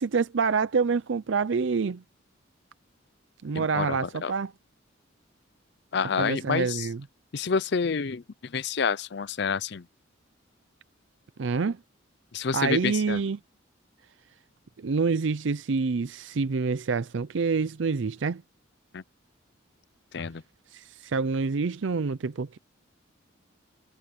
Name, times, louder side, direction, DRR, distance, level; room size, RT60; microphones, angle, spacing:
voice 1, 0.0-2.0 3.4-4.5 6.2-7.0 11.4-11.8 12.5-13.4 14.8-18.4 20.7-22.6, right 4 dB, 65° right, 0.5 m, -27 dB
voice 2, 3.5-4.3 5.9-6.9 7.3-9.8 12.3-13.2 18.9-19.0 20.1-20.4, left 5 dB, 55° left, 0.5 m, -28 dB
head